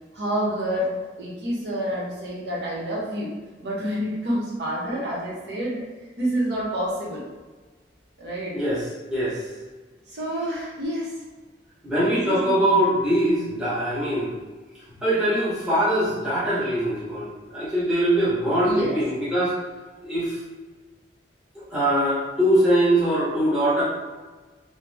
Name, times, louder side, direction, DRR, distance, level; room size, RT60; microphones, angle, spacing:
voice 1, 0.1-0.9 1.2-3.3 3.6-5.8 6.2-7.2 8.2-8.5 10.1-11.1 12.1-12.7 18.6-19.0, equal, 60° right, -6 dB, 0.8 m, -28 dB
voice 2, 8.5-8.8 9.1-9.4 11.8-14.4 15.0-19.5 20.0-20.4 21.7-23.8, right 1 dB, 5° right, -10 dB, 0.9 m, -22 dB
3.2 x 2.0 x 3.2 m, 1.3 s
head